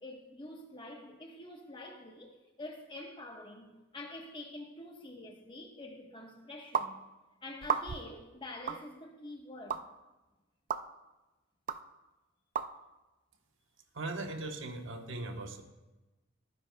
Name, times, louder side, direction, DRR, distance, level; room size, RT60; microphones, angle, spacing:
voice 1, 0.0-7.0 7.4-9.8, left 2 dB, 25° left, 1.2 m, -46 dB
sound 1, 6.7-6.9 7.6-8.1 8.7-8.8 9.7-9.8 10.7-10.8 11.7-11.8 12.6-12.7, right 7 dB, 40° right, 0.4 m, -32 dB
voice 2, 13.9-15.6, right 2 dB, 65° right, 1.1 m, -39 dB
20.5 x 9.9 x 2.3 m
head